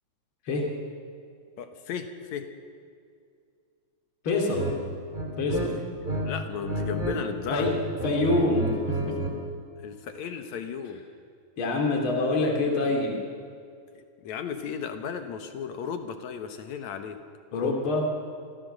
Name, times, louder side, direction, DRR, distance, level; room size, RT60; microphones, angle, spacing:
voice 1, 1.6-2.5 6.0-7.8 9.8-11.0 14.2-17.2 17.5-17.8, left 7 dB, 70° left, 7 dB, 2.6 m, -35 dB
voice 2, 4.2-4.7 5.4-5.7 7.5-7.7 8.0-9.0 11.6-13.1 17.5-18.0, left 2 dB, 45° left, 0 dB, 3.3 m, -25 dB
sound 1, 4.5-4.8 5.1-6.2 6.5-7.2 7.5-9.4, right 2 dB, 15° right, 3.0 m, -30 dB
27.5 x 15.5 x 6.7 m, 2.3 s
omnidirectional pair, 3.5 m